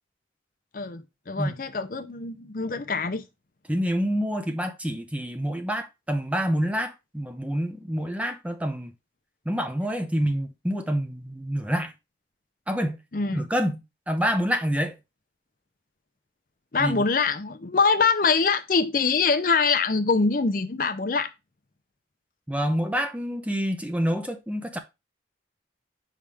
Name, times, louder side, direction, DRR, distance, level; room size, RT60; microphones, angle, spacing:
voice 1, 0.7-3.2 13.1-13.4 16.7-21.3, left 4 dB, 50° left, 0.6 m, -24 dB
voice 2, 3.7-8.9 9.5-11.9 12.7-13.0 13.3-15.0 16.8-17.0 22.5-24.8, equal, 5° right, 0.6 m, -27 dB
5.6 x 3.6 x 4.8 m
head